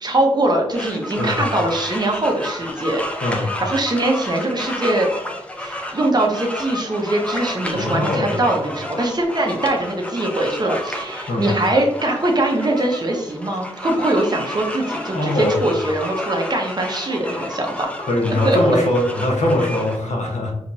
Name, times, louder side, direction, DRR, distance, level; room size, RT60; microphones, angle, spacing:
voice 1, 0.0-5.1 5.6-17.9 18.4-18.6, right 1 dB, 35° right, 1 dB, 0.9 m, -22 dB
sound 1, 0.7-20.0, left 1 dB, 10° left, 0.7 m, -31 dB
voice 2, 3.2-3.5 7.7-8.4 11.3-11.5 15.1-15.7 18.0-20.5, left 1 dB, 90° left, 0 dB, 1.2 m, -21 dB
5.0 x 3.0 x 2.7 m, 0.87 s
wide cardioid pair, 100°, 12 cm